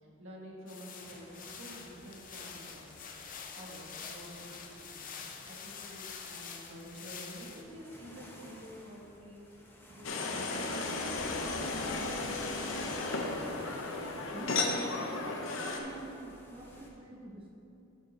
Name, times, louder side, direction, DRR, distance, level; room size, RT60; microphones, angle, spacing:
voice 1, 0.0-3.0 3.5-5.0 5.4-9.5 9.9-12.5, equal, 90° right, -4 dB, 1.7 m, -49 dB
sound 1, 0.7-7.6, left 6 dB, 45° left, 0.6 m, -46 dB
sound 2, 1.0-16.9, left 1 dB, 10° left, 0.8 m, -54 dB
sound 3, 10.0-15.8, left 3 dB, 80° left, 0.7 m, -34 dB
voice 2, 14.3-17.6, right 1 dB, 25° right, -2 dB, 0.7 m, -46 dB
9.4 x 7.5 x 2.8 m, 2.9 s
head